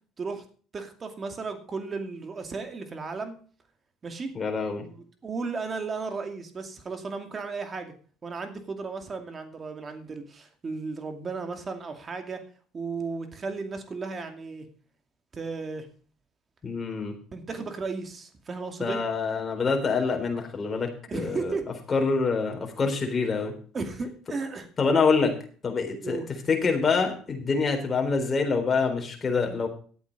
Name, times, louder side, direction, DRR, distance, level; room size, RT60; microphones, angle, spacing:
voice 1, 0.7-3.4 4.0-4.3 4.8-4.9 5.2-7.9 8.2-12.4 12.7-14.7 15.3-15.9 17.3-19.0 21.1-21.7 23.7-24.7 26.0-26.3, right 4 dB, 30° right, 6 dB, 2.4 m, -34 dB
voice 2, 4.3-4.9 16.6-17.1 18.8-21.5 21.9-23.5 24.8-25.4 25.6-26.2 26.5-29.7, left 4 dB, 30° left, 3 dB, 3.8 m, -26 dB
12.0 x 8.5 x 5.3 m, 0.43 s
supercardioid pair, 90°, 0 cm